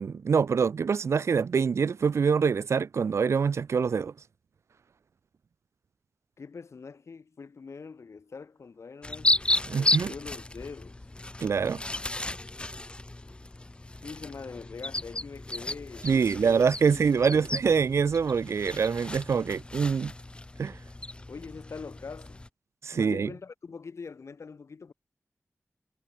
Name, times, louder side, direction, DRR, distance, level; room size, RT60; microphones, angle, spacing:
voice 1, 0.0-4.1 9.7-10.1 11.4-11.8 16.0-20.1 20.6-20.8 22.8-23.3, right 6 dB, 75° right, 0.4 m, -25 dB
voice 2, 6.4-9.4 9.8-11.0 14.0-16.5 16.8-17.5 21.3-22.4 22.9-24.9, left 5 dB, 80° left, 4.5 m, -43 dB
sound 1, 9.0-22.5, left 2 dB, 20° left, 0.7 m, -34 dB
wide cardioid pair, 105°, 5 cm